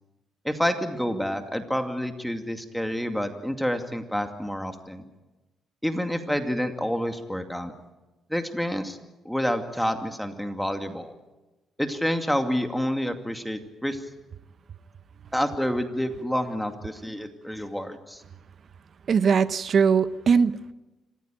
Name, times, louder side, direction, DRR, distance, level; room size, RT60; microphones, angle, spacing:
voice 1, 0.4-5.0 5.8-7.7 8.3-9.0 9.2-11.1 11.8-14.1 15.3-18.2, equal, ahead, 6 dB, 2.4 m, -28 dB
voice 2, 19.1-20.7, right 6 dB, 50° right, 15 dB, 0.9 m, -21 dB
27.0 x 15.0 x 9.2 m, 1.1 s
cardioid pair, 90°, 0 cm